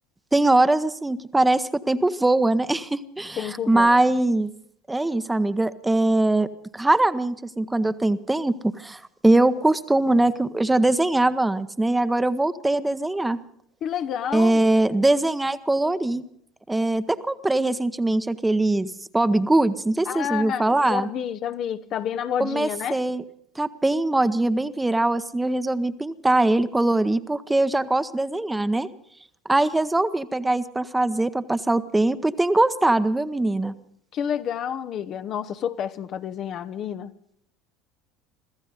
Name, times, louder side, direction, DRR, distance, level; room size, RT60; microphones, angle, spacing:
voice 1, 0.3-4.5 4.9-6.5 6.7-13.4 14.3-16.2 16.7-21.1 22.4-23.2 23.6-28.9 29.5-33.7, right 2 dB, 10° right, 0.9 m, -22 dB
voice 2, 3.4-4.0 13.8-14.6 20.1-23.0 34.1-37.1, left 9 dB, 45° left, 0.8 m, -29 dB
25.0 x 14.5 x 3.9 m
hypercardioid pair, 75°, 0 cm